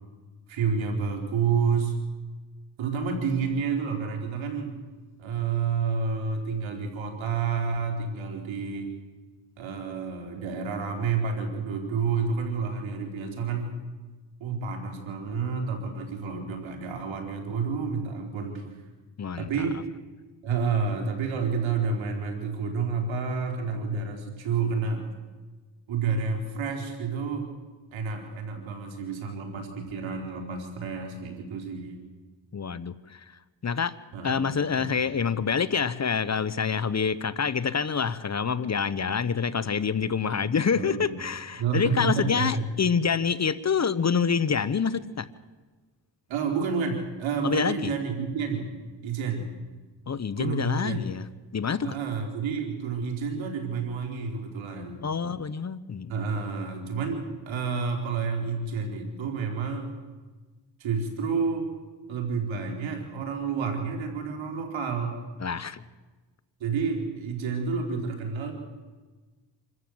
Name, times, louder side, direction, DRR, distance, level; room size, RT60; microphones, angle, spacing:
voice 1, 0.5-2.0 2.8-4.7 5.2-8.9 9.6-13.8 14.4-18.8 19.4-19.8 20.4-25.0 25.9-27.5 27.9-32.0 34.1-35.0 40.7-41.2 41.6-42.6 46.3-48.7 49.0-49.5 50.4-51.1 51.8-55.0 56.1-59.9 60.8-61.7 62.1-65.3 66.6-68.5, right 5 dB, 85° right, 2 dB, 4.1 m, -29 dB
voice 2, 19.2-19.5 32.5-33.2 33.6-34.0 34.2-45.3 47.4-47.9 50.1-51.3 51.5-52.0 55.0-56.1 65.4-65.8, left 6 dB, 35° left, 16 dB, 1.0 m, -27 dB
26.5 x 14.0 x 7.9 m, 1.3 s
cardioid pair, 70°, 46 cm